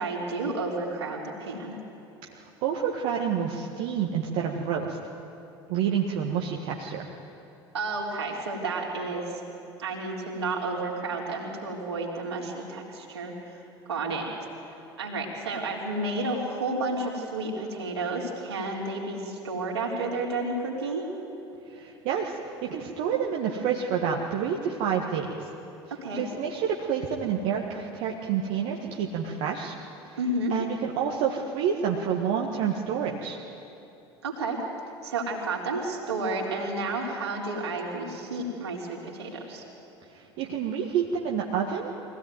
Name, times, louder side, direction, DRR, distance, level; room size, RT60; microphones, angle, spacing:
voice 1, 0.0-1.8 7.7-9.4 9.8-13.6 13.9-14.3 15.0-21.1 26.0-26.2 30.2-30.5 34.2-34.6 35.0-39.6, right 2 dB, 80° right, -2 dB, 4.0 m, -31 dB
voice 2, 2.2-5.0 5.7-7.1 21.7-25.5 26.1-29.7 30.5-33.4 40.1-41.9, right 7 dB, 55° right, 0 dB, 1.7 m, -28 dB
23.5 x 17.0 x 9.4 m, 2.9 s
figure-of-eight pair, 65°, 14 cm